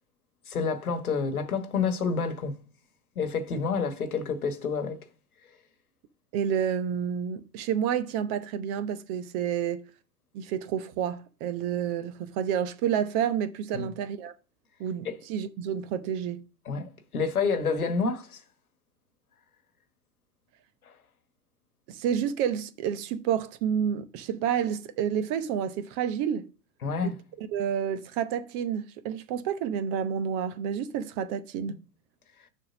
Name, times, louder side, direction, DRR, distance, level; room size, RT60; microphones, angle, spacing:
voice 1, 0.5-2.6 3.2-5.0 13.7-13.9 15.0-15.2 16.7-18.4 26.8-27.1 31.7-31.8, left 5 dB, 80° left, 1.3 m, -29 dB
voice 2, 6.3-9.9 10.3-14.3 14.8-16.4 21.9-26.5 27.0-31.8, right 8 dB, 40° right, 0.8 m, -29 dB
6.9 x 3.6 x 5.9 m
figure-of-eight pair, 100°, 43 cm